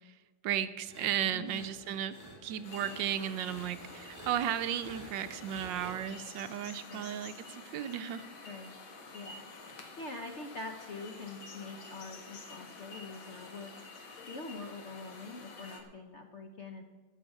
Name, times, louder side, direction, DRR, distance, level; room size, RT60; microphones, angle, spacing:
voice 1, 0.4-2.2 2.4-8.2, right 10 dB, 75° right, 12 dB, 1.3 m, -34 dB
sound 1, 0.8-5.9, right 1 dB, 10° right, 2.9 m, -51 dB
voice 2, 1.3-1.6 6.9-7.1 8.5-8.7 9.1-9.5 10.0-13.7 14.3-16.8, left 3 dB, 55° left, 4 dB, 0.8 m, -44 dB
sound 2, 2.6-15.8, left 3 dB, 85° left, 2.3 m, -49 dB
13.5 x 6.4 x 8.1 m, 1.3 s
omnidirectional pair, 2.1 m